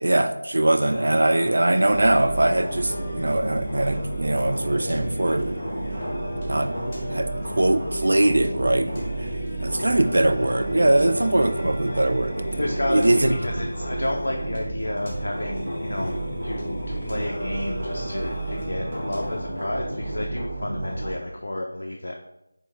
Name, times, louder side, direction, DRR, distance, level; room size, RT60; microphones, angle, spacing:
voice 1, 0.0-5.6 6.5-6.7 7.1-9.3 9.6-13.3, right 1 dB, 65° right, 8 dB, 0.3 m, -22 dB
Singing, 0.8-19.8, equal, 25° left, 1.0 m, -35 dB
sound 1, 1.9-21.2, right 2 dB, 30° right, 1.1 m, -32 dB
voice 2, 9.8-10.1 12.6-16.1 16.4-22.2, left 1 dB, 65° left, 1 dB, 0.5 m, -31 dB
4.5 x 2.7 x 3.4 m, 0.88 s
figure-of-eight pair, 165°, 0 cm